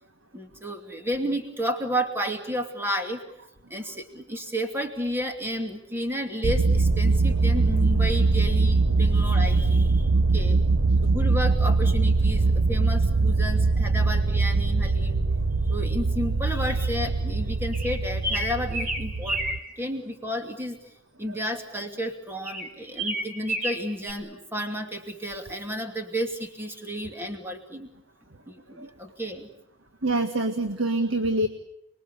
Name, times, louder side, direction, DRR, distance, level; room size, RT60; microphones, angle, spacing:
voice 1, 0.3-3.2 3.7-10.6 11.0-15.2 15.6-19.4 19.8-27.9 28.5-29.5, equal, 10° right, 4 dB, 2.7 m, -32 dB
sound 1, 6.4-19.6, right 3 dB, 80° right, 1.1 m, -22 dB
sound 2, 17.7-19.6 22.4-24.1, right 1 dB, 40° right, 5.3 m, -30 dB
voice 2, 30.0-31.5, right 2 dB, 65° right, 7 dB, 1.9 m, -25 dB
30.0 x 22.5 x 8.3 m, 0.78 s
head